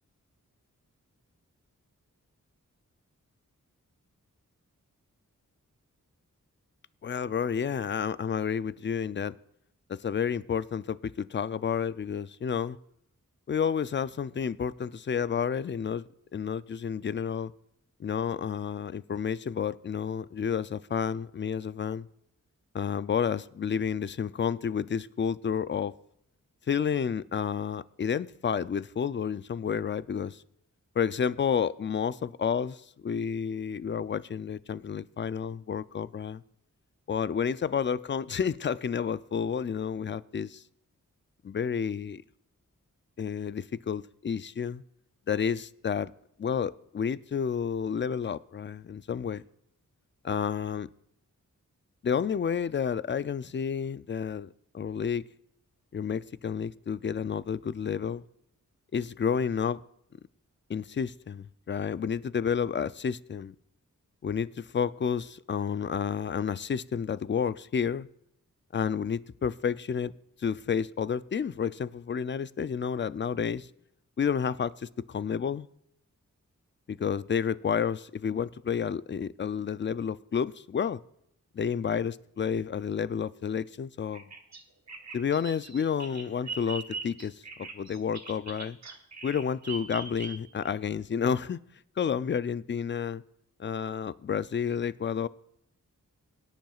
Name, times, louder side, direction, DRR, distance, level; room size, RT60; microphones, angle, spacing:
voice 1, 7.0-9.4 9.9-12.8 13.5-16.0 16.3-17.5 18.0-22.1 22.7-25.9 26.7-30.4 31.0-36.4 37.1-40.6 41.4-42.2 43.2-44.8 45.3-46.1 46.4-49.4 50.2-50.9 52.0-54.5 54.7-55.2 55.9-58.2 58.9-59.8 60.7-63.5 64.2-68.1 68.7-70.1 70.4-73.7 74.2-75.7 76.9-81.0 81.5-84.3 85.1-88.8 89.2-91.6 92.0-93.2 93.6-95.3, left 7 dB, 35° left, 0.4 m, -30 dB
Bird vocalization bird call bird song, 84.1-90.7, right 4 dB, 55° right, 1.2 m, -41 dB
22.5 x 10.5 x 2.4 m
wide cardioid pair, 90°, 32 cm